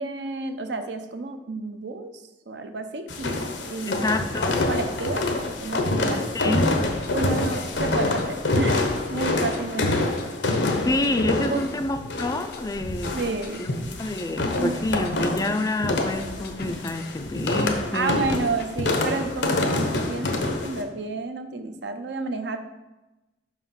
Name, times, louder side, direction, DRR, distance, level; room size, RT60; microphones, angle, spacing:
voice 1, 0.0-4.1 4.7-6.3 7.1-10.1 11.5-11.7 13.1-13.7 14.5-14.8 17.9-22.6, right 3 dB, 70° right, 7 dB, 0.7 m, -31 dB
sound 1, 3.1-20.8, left 2 dB, 80° left, 1.0 m, -26 dB
voice 2, 3.9-4.6 6.3-6.8 10.8-13.1 13.6-18.2, left 2 dB, 20° left, 8 dB, 0.4 m, -28 dB
sound 2, 6.8-8.2 8.5-10.2 10.5-12.2 12.5-14.2 14.5-17.7 17.9-19.7 19.9-20.0, left 2 dB, 60° left, 0.7 m, -42 dB
5.9 x 4.9 x 5.7 m, 1.0 s
head